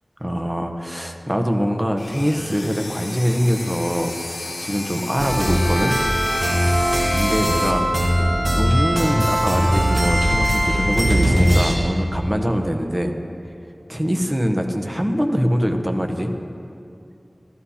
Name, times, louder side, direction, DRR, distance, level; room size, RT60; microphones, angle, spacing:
voice 1, 0.2-6.0 7.1-7.9 8.5-13.1 13.9-16.3, equal, 20° right, 5 dB, 0.9 m, -23 dB
sound 1, 2.0-7.7, left 2 dB, 85° left, 0.9 m, -32 dB
sound 2, 5.2-11.8, equal, 55° right, 1.5 m, -19 dB
13.5 x 12.5 x 2.8 m, 2.6 s
wide cardioid pair, 65°, 0 cm